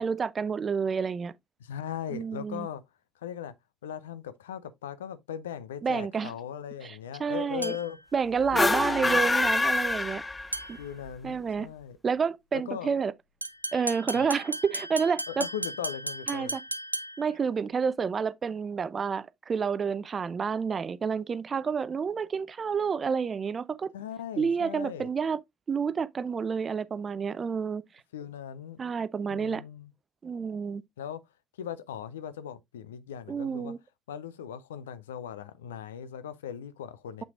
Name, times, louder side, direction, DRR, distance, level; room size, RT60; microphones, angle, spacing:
voice 1, 0.0-1.4 2.1-2.7 5.8-6.3 6.8-7.7 8.1-10.2 10.7-10.8 11.2-11.7 12.0-13.1 13.7-15.5 16.3-16.6 17.2-23.9 24.4-25.4 25.7-27.8 28.8-29.6 30.2-30.8 33.3-33.8, right 6 dB, 35° right, 0.5 m, -29 dB
voice 2, 1.6-2.8 3.2-3.5 3.8-8.0 8.5-9.2 10.8-12.0 12.5-12.9 14.1-14.3 15.3-16.6 23.9-25.1 28.1-28.8 29.3-29.9 31.0-31.2 31.6-33.7 34.1-37.2, left 9 dB, 75° left, 0.5 m, -39 dB
sound 1, 7.6-8.1 10.5-10.9 13.4-17.4, right 1 dB, 90° right, 0.3 m, -36 dB
Endurance Fart, 8.4-10.8, left 2 dB, 15° left, 0.5 m, -25 dB
7.6 x 5.7 x 2.5 m
figure-of-eight pair, 55°, 0 cm